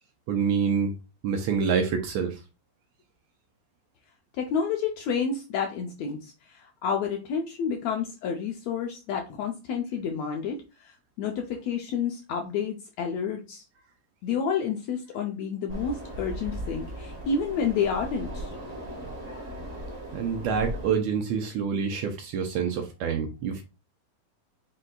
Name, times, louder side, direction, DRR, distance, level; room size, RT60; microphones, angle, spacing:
voice 1, 0.3-0.9 1.2-2.4 20.1-23.6, right 6 dB, 75° right, 1.8 m, -27 dB
voice 2, 4.4-6.2 6.8-10.6 11.2-13.6 14.2-18.5, left 6 dB, 75° left, 1.6 m, -29 dB
sound 1, 15.7-20.9, right 1 dB, 40° right, 1.2 m, -37 dB
5.4 x 3.9 x 2.3 m
omnidirectional pair, 3.7 m